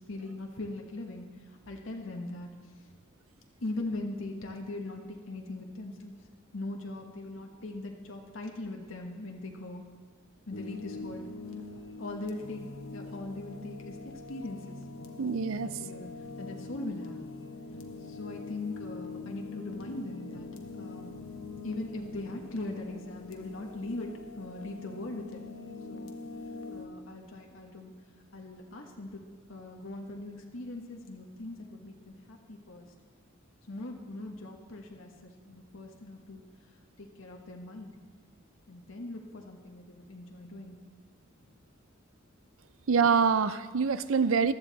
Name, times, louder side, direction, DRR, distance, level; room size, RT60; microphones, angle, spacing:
voice 1, 0.1-1.2 1.7-2.5 3.6-6.2 6.5-9.8 10.5-11.3 12.0-14.0 14.3-14.8 15.8-16.1 16.4-17.2 18.0-20.5 20.8-24.1 24.4-25.4 25.9-26.1 26.7-27.9 28.3-29.2 29.5-32.9 33.7-36.4 37.0-37.9 38.7-40.8, left 2 dB, 75° left, 1 dB, 1.4 m, -40 dB
sound 1, 10.5-26.9, left 3 dB, 90° left, 1.2 m, -43 dB
voice 2, 15.2-15.7 42.9-44.5, right 5 dB, 80° right, 14 dB, 0.5 m, -25 dB
15.0 x 12.0 x 4.1 m, 1.5 s
head